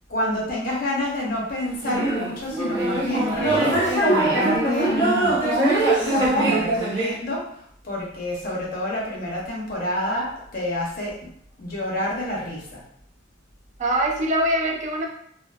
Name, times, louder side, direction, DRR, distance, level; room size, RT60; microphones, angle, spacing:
voice 1, 0.1-7.4 7.8-11.1 11.6-12.8, left 1 dB, 50° left, -4 dB, 0.8 m, -28 dB
sound 1, 1.8-7.2, right 2 dB, 70° right, 0.8 m, -22 dB
voice 2, 6.4-6.8 13.8-15.1, right 1 dB, 40° right, 0 dB, 0.3 m, -23 dB
2.4 x 2.3 x 2.3 m, 0.67 s
head